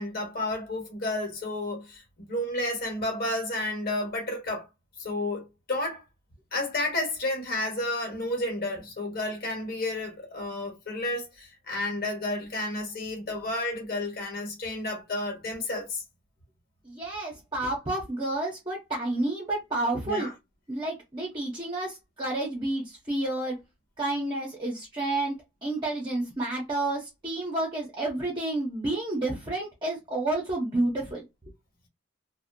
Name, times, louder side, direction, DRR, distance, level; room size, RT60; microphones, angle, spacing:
voice 1, 0.0-4.6 5.0-6.0 6.5-16.0 20.0-20.3, left 1 dB, 50° left, 1.2 m, -31 dB
voice 2, 16.8-20.3 20.7-23.6 24.0-31.2, right 2 dB, 25° right, 0.7 m, -30 dB
2.7 x 2.1 x 2.6 m
head